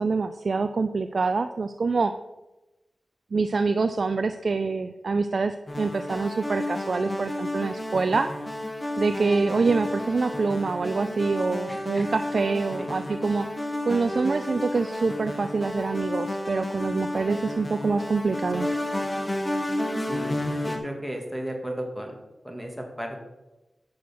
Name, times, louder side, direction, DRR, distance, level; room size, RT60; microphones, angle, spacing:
voice 1, 0.0-2.1 3.3-8.3 9.0-13.5 13.9-18.7, right 4 dB, 65° right, 9 dB, 0.4 m, -25 dB
sound 1, 5.7-20.8, left 1 dB, 20° left, 1.9 m, -31 dB
voice 2, 11.7-12.1 12.8-12.9 20.1-22.2 22.4-23.2, right 1 dB, ahead, 1 dB, 2.5 m, -35 dB
8.4 x 6.3 x 6.2 m, 1.0 s
cardioid pair, 45°, 0 cm